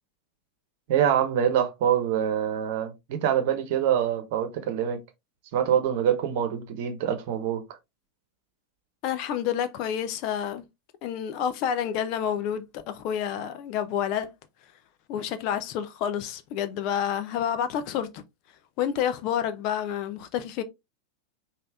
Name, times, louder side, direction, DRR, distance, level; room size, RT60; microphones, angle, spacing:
voice 1, 0.9-5.0 5.5-7.6, right 9 dB, 50° right, 1.0 m, -25 dB
voice 2, 9.0-10.6 11.0-14.3 14.6-14.7 15.1-18.2 18.5-20.6, left 9 dB, 40° left, 0.7 m, -29 dB
5.4 x 2.8 x 3.5 m
figure-of-eight pair, 90°, 0 cm